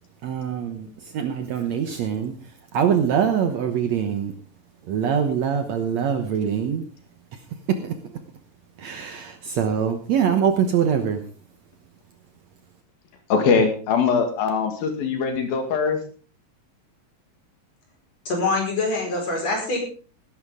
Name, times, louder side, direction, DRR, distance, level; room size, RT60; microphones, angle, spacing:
voice 1, 0.2-2.3 2.7-4.3 4.9-6.8 7.3-7.4 7.7-7.9 8.8-11.2, right 8 dB, 65° right, 1.9 m, -23 dB
voice 2, 13.3-16.0, left 5 dB, 85° left, 3.8 m, -21 dB
voice 3, 18.3-19.8, left 3 dB, 45° left, 6.1 m, -24 dB
18.5 x 11.0 x 3.7 m
omnidirectional pair, 4.1 m